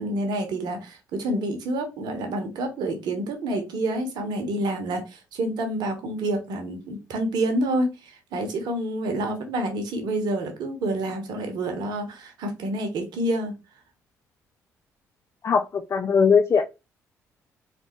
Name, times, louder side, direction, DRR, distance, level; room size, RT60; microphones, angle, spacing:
voice 1, 0.0-13.5, right 1 dB, 60° right, 1.1 m, -28 dB
voice 2, 15.4-16.6, left 6 dB, 35° left, 0.5 m, -20 dB
3.8 x 3.4 x 3.1 m
figure-of-eight pair, 40°, 8 cm